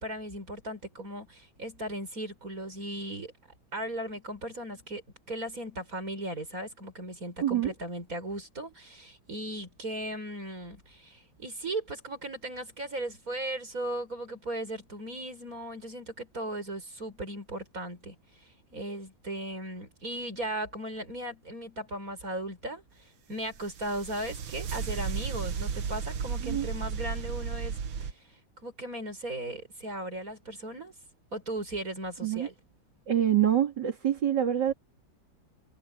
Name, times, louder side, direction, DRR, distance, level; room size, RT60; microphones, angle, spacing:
voice 1, 0.0-3.3 3.7-5.0 5.3-18.2 18.7-22.8 23.3-27.8 28.6-30.9 31.3-32.5, right 1 dB, 45° right, 7.3 m, -37 dB
voice 2, 7.4-7.7 26.4-26.7 32.2-32.5 33.1-34.7, right 10 dB, 65° right, 3.1 m, -26 dB
sound 1, 23.5-28.1, right 6 dB, 80° right, 2.0 m, -34 dB
omnidirectional pair, 2.1 m